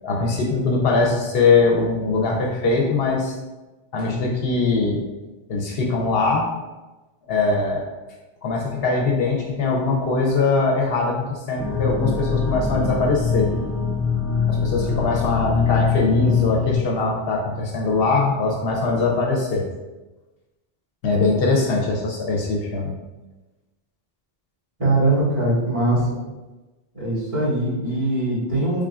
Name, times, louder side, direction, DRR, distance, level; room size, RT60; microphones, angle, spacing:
voice 1, 0.0-3.4 3.9-5.0 5.5-6.5 7.3-7.9 8.4-13.5 14.5-19.6 21.0-22.9, left 3 dB, 75° left, 0 dB, 0.8 m, -21 dB
sound 1, 11.6-16.8, left 5 dB, 20° left, 0.5 m, -23 dB
voice 2, 24.8-26.0 26.9-28.8, right 2 dB, 30° right, -9 dB, 1.7 m, -21 dB
3.7 x 3.6 x 2.3 m, 1.1 s
omnidirectional pair, 1.0 m